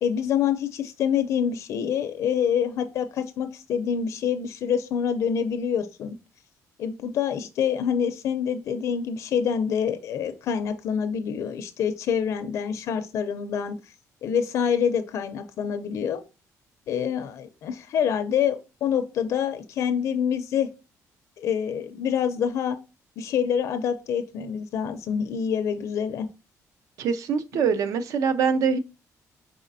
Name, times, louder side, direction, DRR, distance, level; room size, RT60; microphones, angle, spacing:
voice 1, 0.0-6.2 6.8-13.8 14.2-16.2 16.9-20.7 21.4-22.8 23.2-26.3, left 8 dB, 55° left, 0.5 m, -26 dB
voice 2, 27.0-28.8, right 6 dB, 60° right, 0.5 m, -24 dB
4.9 x 3.7 x 2.6 m
cardioid pair, 175°, 6 cm